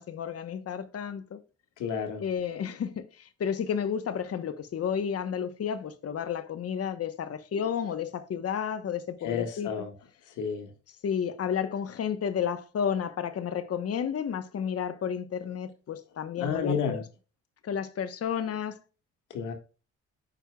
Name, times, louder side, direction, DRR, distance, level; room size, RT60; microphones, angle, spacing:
voice 1, 0.0-1.4 2.2-3.0 3.4-9.7 11.0-17.0 17.6-18.8, left 8 dB, 50° left, 1.1 m, -31 dB
voice 2, 1.8-2.2 9.2-9.9 10.4-10.7 16.4-17.0 19.3-19.5, left 6 dB, 85° left, 2.0 m, -31 dB
8.9 x 6.3 x 2.3 m
cardioid pair, 90°, 30 cm